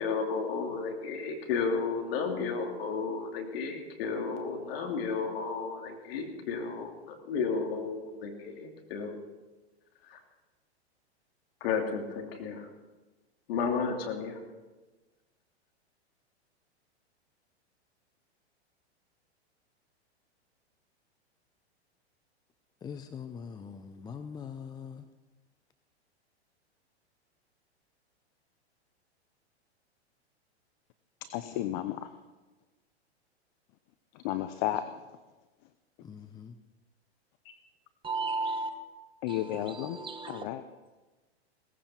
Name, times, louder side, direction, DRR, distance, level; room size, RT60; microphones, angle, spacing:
voice 1, 0.0-9.2 10.0-10.2 11.6-12.7 13.5-14.4, left 5 dB, 60° left, 3.1 m, -33 dB
voice 2, 22.8-25.1 36.0-36.6, left 6 dB, 10° left, 0.5 m, -43 dB
voice 3, 31.3-32.2 34.1-35.0 37.4-37.5 39.2-40.0 40.3-40.6, left 13 dB, 45° left, 0.8 m, -33 dB
voice 4, 38.0-38.7 39.3-40.4, right 3 dB, 15° right, 1.4 m, -34 dB
17.5 x 15.0 x 4.5 m
hypercardioid pair, 115°, 34 cm